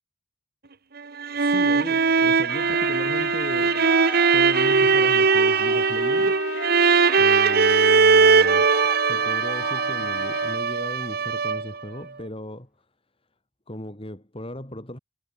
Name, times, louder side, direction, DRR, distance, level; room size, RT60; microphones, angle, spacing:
sound 1, 1.0-11.8, right 5 dB, 50° right, 1.0 m, -20 dB
voice 1, 1.3-4.0 4.3-6.4 7.2-8.7 9.0-12.7 13.7-15.0, left 1 dB, 30° left, 4.0 m, -36 dB
Trumpet, 2.5-10.6, left 4 dB, 65° left, 2.3 m, -34 dB
Cheering, 2.6-10.6 11.0-11.2 11.5-12.5, right 1 dB, 5° right, 6.8 m, -45 dB
head